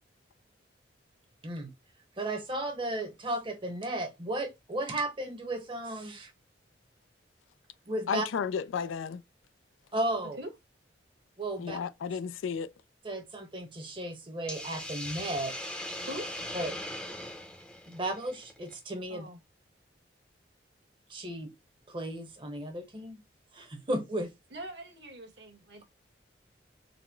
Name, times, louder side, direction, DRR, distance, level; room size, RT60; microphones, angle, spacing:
voice 1, 2.2-6.3 7.9-8.3 9.9-10.4 11.4-11.8 12.1-12.2 13.0-15.5 16.5-16.8 17.9-19.3 21.1-21.5 21.9-23.2 23.5-24.3, right 1 dB, 25° right, 0.9 m, -34 dB
voice 2, 8.1-9.2 11.6-12.7, left 6 dB, 90° left, 0.3 m, -33 dB
Hiss, 14.5-18.8, left 1 dB, 5° left, 0.6 m, -40 dB
voice 3, 24.5-25.8, right 1 dB, 60° right, 1.2 m, -42 dB
4.0 x 2.1 x 4.4 m
head